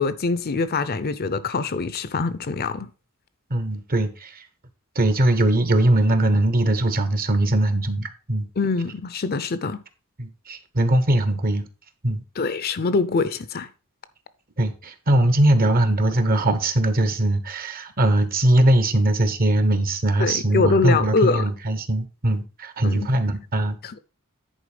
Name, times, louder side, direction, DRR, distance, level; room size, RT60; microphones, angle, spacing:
voice 1, 0.0-2.9 8.6-9.8 12.4-13.7 20.2-21.4 22.8-23.1 23.8-24.0, left 4 dB, 45° left, 0.6 m, -24 dB
voice 2, 3.5-4.3 5.0-8.5 10.2-11.7 12.0-12.2 14.6-23.8, right 1 dB, 40° right, 1.0 m, -21 dB
10.0 x 4.5 x 5.0 m
head